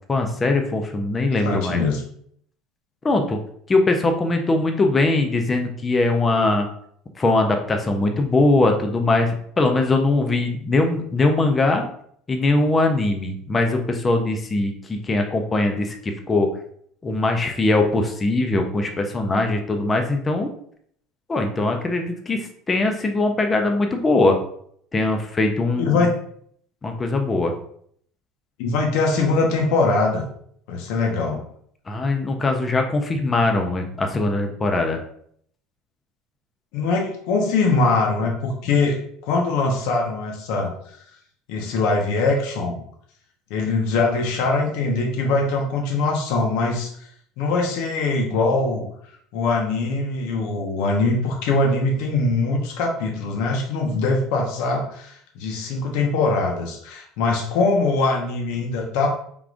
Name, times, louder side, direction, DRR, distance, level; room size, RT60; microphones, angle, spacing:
voice 1, 0.1-1.8 3.0-3.4 3.7-6.7 7.2-11.8 12.3-16.5 17.0-20.5 21.3-24.4 24.9-26.0 26.8-27.5 31.9-35.0, left 2 dB, 15° left, 4 dB, 0.4 m, -21 dB
voice 2, 1.4-2.0 25.8-26.1 28.6-30.3 30.7-31.4 36.7-39.0 39.2-40.7 41.5-42.8 43.5-47.1 47.4-48.9 49.3-59.1, left 3 dB, 70° left, 1 dB, 0.9 m, -22 dB
4.6 x 3.6 x 2.5 m, 0.65 s
cardioid pair, 150°, 0 cm